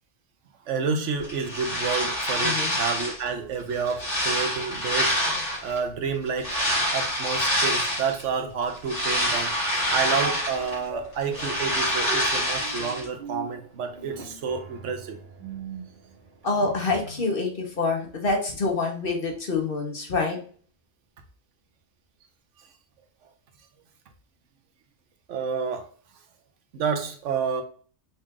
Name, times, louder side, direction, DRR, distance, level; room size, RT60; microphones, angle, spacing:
voice 1, 0.7-6.5 6.9-9.5 9.9-15.2 25.3-25.9 26.7-27.6, right 5 dB, 80° right, 6 dB, 1.0 m, -29 dB
sound 1, 1.2-3.3 3.7-5.8 6.4-8.2 8.6-10.8 11.1-13.0, equal, 75° left, 2.8 m, -26 dB
voice 2, 2.4-2.8 16.4-20.4, left 3 dB, 50° left, 2 dB, 1.1 m, -26 dB
sound 2, 8.7-17.3 17.8-17.9, right 3 dB, 45° right, 1.1 m, -41 dB
5.4 x 2.4 x 3.6 m, 0.44 s
omnidirectional pair, 1.2 m